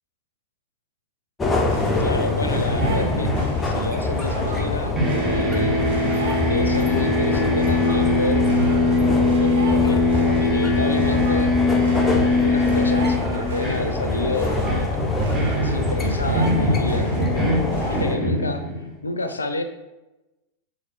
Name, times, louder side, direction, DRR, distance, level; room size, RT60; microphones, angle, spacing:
sound 1, 1.4-18.2, left 2 dB, 15° left, 0.6 m, -25 dB
sound 2, 1.6-18.0, right 4 dB, 65° right, 0.7 m, -34 dB
voice 1, 2.0-3.3 3.6-5.0 5.3-5.9 6.4-8.5 9.4-10.0 10.4-11.5 12.2-15.0 15.5-17.5 17.9-18.6 19.0-19.6, left 2 dB, 80° left, 7 dB, 0.4 m, -29 dB
sound 3, 2.5-4.7 5.0-18.9, left 2 dB, 10° right, 1.3 m, -22 dB
3.9 x 3.0 x 4.1 m, 1.0 s
figure-of-eight pair, 90°, 0 cm